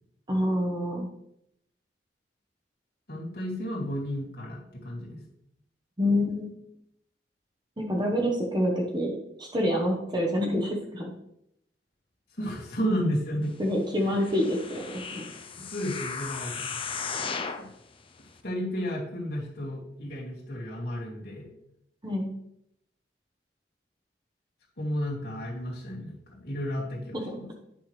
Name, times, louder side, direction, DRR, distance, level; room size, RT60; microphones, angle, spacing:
voice 1, 0.3-1.1 6.0-6.5 7.8-11.1 13.6-15.3 22.0-22.3 27.1-27.4, left 1 dB, 25° right, 0 dB, 1.0 m, -27 dB
voice 2, 3.1-5.2 12.4-13.6 14.0-14.1 15.6-16.6 17.5-17.7 18.4-21.5 24.8-27.5, equal, 60° left, -5 dB, 2.3 m, -32 dB
sound 1, 14.1-17.7 18.3-18.4, left 5 dB, 30° left, 0.6 m, -36 dB
9.2 x 5.6 x 3.2 m, 0.77 s
head